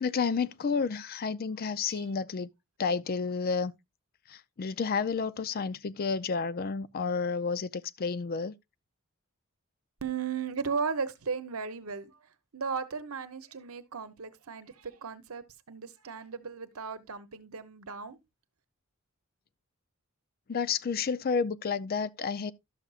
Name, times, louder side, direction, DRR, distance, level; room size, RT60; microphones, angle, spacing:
voice 1, 0.0-2.5 2.8-3.7 4.3-8.5 20.5-22.5, left 5 dB, 45° left, 0.4 m, -30 dB
voice 2, 10.0-12.1 12.5-18.2, right 5 dB, 80° right, 0.9 m, -36 dB
12.0 x 6.8 x 2.4 m
head